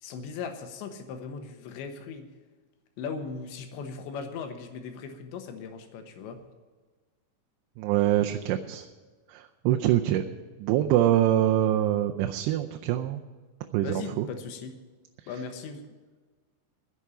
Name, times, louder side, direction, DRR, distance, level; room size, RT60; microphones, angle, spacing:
voice 1, 0.0-2.3 3.0-6.4 13.8-14.7 15.3-15.8, left 5 dB, 85° left, 6 dB, 3.5 m, -38 dB
voice 2, 7.8-8.9 9.3-10.3 10.6-13.2 13.7-14.3, right 12 dB, 80° right, 5 dB, 2.7 m, -24 dB
10.5 x 8.3 x 9.9 m, 1.4 s
omnidirectional pair, 5.0 m